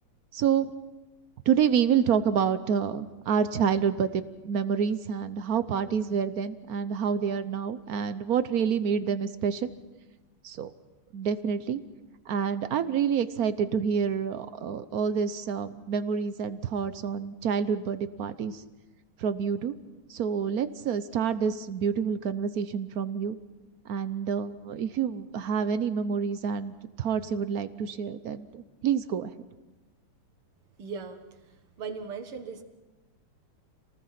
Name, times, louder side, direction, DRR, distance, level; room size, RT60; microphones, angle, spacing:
voice 1, 0.3-0.7 1.5-9.7 10.4-10.7 11.1-11.8 12.3-18.6 19.2-19.7 20.1-23.4 23.8-29.3, right 7 dB, 60° right, 12 dB, 1.0 m, -28 dB
voice 2, 30.8-32.6, right 5 dB, 80° right, 7 dB, 2.5 m, -39 dB
27.5 x 19.0 x 5.9 m, 1.1 s
omnidirectional pair, 2.4 m